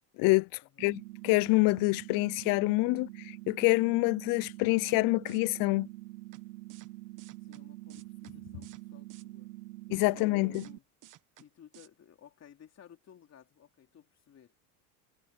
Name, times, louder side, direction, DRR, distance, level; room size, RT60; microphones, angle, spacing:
voice 1, 0.2-0.5 0.8-3.1 3.5-5.9 9.9-10.7, left 27 dB, 50° left, 0.5 m, -26 dB
sound 1, 0.8-10.8, right 19 dB, 80° right, 0.8 m, -46 dB
sound 2, 4.4-4.5 4.8-5.0 5.3-5.4 6.3-6.4 6.7-6.9 7.2-7.6 7.9-8.3 8.6-8.8 9.1-9.2 10.2-10.3 10.5-10.7 11.0-11.4 11.7-11.9, right 13 dB, 45° right, 1.6 m, -55 dB
voice 2, 7.4-9.5 10.1-10.9 11.4-14.5, left 9 dB, 35° left, 3.6 m, -57 dB
supercardioid pair, 105°, 45 cm